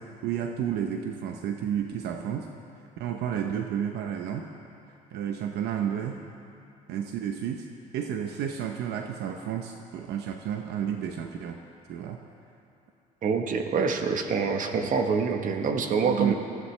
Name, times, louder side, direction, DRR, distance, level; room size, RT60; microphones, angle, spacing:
voice 1, 0.0-2.5 3.0-4.5 5.1-6.2 6.9-7.7 7.9-11.6 11.9-12.2 14.8-14.9 16.0-16.4, right 9 dB, 75° right, 4 dB, 0.8 m, -31 dB
voice 2, 13.2-16.4, right 5 dB, 50° right, 5 dB, 1.3 m, -26 dB
20.0 x 15.0 x 3.3 m, 2.7 s
cardioid pair, 110°, 17 cm